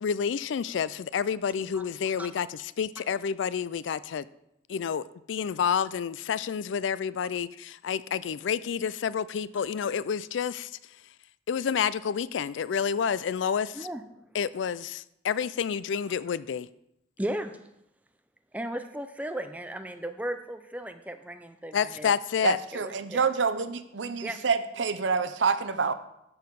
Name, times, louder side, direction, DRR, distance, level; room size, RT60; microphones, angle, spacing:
voice 1, 0.0-4.3 4.7-10.7 11.5-13.9 14.3-16.7 21.7-22.6, left 7 dB, 80° left, 17 dB, 0.4 m, -29 dB
voice 2, 17.2-17.5 18.5-22.1 22.7-23.2 24.2-24.4, right 1 dB, 10° right, 8 dB, 0.5 m, -35 dB
voice 3, 22.4-25.9, right 5 dB, 80° right, 11 dB, 0.6 m, -27 dB
13.0 x 4.8 x 5.3 m, 0.83 s
head